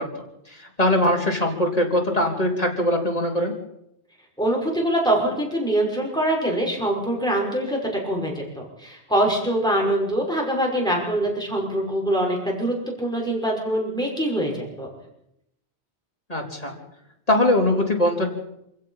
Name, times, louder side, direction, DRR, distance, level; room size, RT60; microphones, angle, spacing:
voice 1, 0.0-3.6 16.3-16.7 17.3-18.3, left 1 dB, 35° left, 0 dB, 4.0 m, -22 dB
voice 2, 4.4-7.8 8.0-14.9, right 1 dB, 5° left, -1 dB, 5.9 m, -24 dB
27.0 x 17.0 x 5.8 m, 0.80 s
omnidirectional pair, 1.1 m